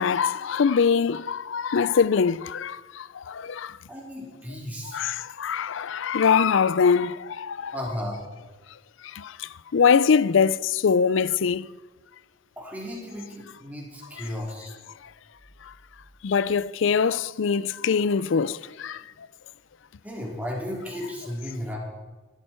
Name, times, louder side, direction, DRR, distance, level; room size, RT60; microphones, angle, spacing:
voice 1, 0.0-3.8 4.8-7.8 9.1-11.6 14.2-14.3 16.2-19.0, left 6 dB, 65° left, 0.4 m, -23 dB
voice 2, 3.9-5.0 7.7-8.2 12.6-14.7 20.0-21.8, left 1 dB, 10° right, 3.6 m, -34 dB
17.5 x 12.5 x 4.4 m
head